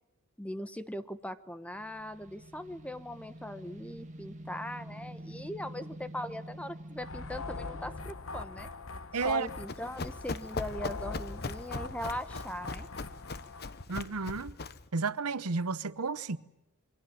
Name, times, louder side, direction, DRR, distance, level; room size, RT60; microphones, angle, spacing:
voice 1, 0.4-8.7 9.1-12.9, equal, 5° left, 1.0 m, -40 dB
sound 1, 1.7-8.1, right 1 dB, 35° right, 1.9 m, -47 dB
sound 2, 7.0-13.8, left 3 dB, 60° left, 1.2 m, -42 dB
voice 2, 9.1-9.5 13.9-14.5 14.9-16.4, right 4 dB, 75° right, 0.9 m, -32 dB
Run, 9.3-14.9, left 3 dB, 45° left, 1.1 m, -40 dB
28.0 x 23.5 x 7.5 m
head